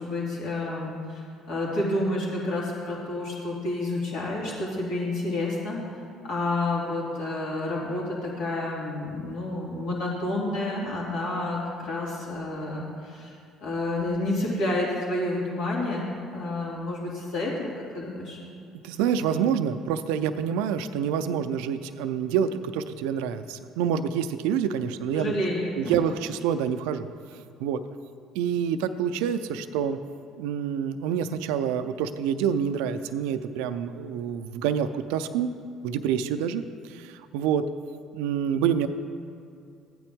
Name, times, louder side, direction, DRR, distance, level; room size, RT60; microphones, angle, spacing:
voice 1, 0.0-5.8 6.2-18.4 25.1-26.0, left 2 dB, 70° left, -5 dB, 2.6 m, -29 dB
voice 2, 18.8-25.3 25.8-27.1 27.3-27.8 28.3-30.0 30.4-35.5 35.8-37.6 38.1-38.9, right 8 dB, 75° right, 11 dB, 0.4 m, -27 dB
14.0 x 9.1 x 3.6 m, 2.5 s
hypercardioid pair, 65°, 0 cm